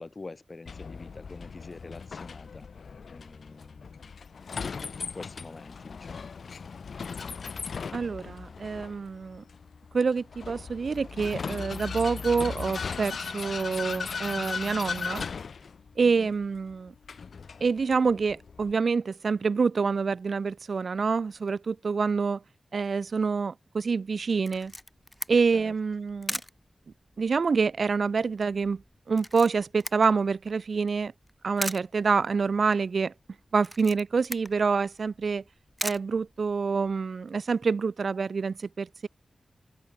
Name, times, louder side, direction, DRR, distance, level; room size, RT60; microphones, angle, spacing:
voice 1, 0.0-2.7 3.1-4.0 4.5-6.3 16.0-16.3 25.5-25.8, left 3 dB, 40° left, 2.8 m, -46 dB
Vehicle, 0.7-18.7, left 5 dB, 75° left, 0.5 m, -38 dB
voice 2, 7.9-9.4 9.9-15.3 16.0-16.9 17.6-22.4 22.7-24.7 25.3-26.4 27.2-28.8 29.1-31.1 31.4-33.1 33.5-35.4 35.8-39.1, right 5 dB, 65° right, 0.3 m, -27 dB
Camera, 24.4-36.9, equal, 5° left, 0.6 m, -41 dB
open air
wide cardioid pair, 75°, 0 cm